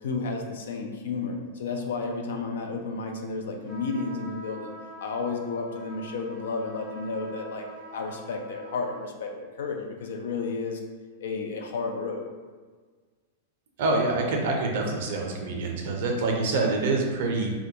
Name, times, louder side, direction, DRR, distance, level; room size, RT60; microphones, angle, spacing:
voice 1, 0.0-4.7 5.0-10.8 11.2-12.3, left 4 dB, 75° left, 3 dB, 0.3 m, -32 dB
sound 1, 3.7-9.1, equal, 30° left, 0.6 m, -45 dB
voice 2, 13.8-17.5, right 3 dB, 65° right, 1 dB, 0.5 m, -26 dB
2.2 x 2.2 x 2.7 m, 1.5 s
hypercardioid pair, 105°, 0 cm